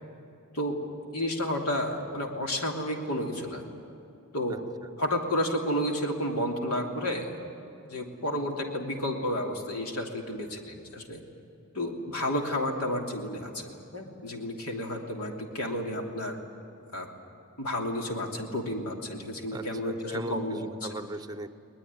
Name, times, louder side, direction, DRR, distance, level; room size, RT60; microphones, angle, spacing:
voice 1, 1.1-3.6 4.3-4.6 5.0-7.4 7.9-11.2 11.7-16.4 16.9-17.1 17.6-20.6, left 1 dB, 85° left, 2 dB, 3.1 m, -31 dB
voice 2, 19.5-21.5, right 2 dB, 15° right, 11 dB, 0.8 m, -38 dB
21.5 x 20.0 x 9.8 m, 2.7 s
head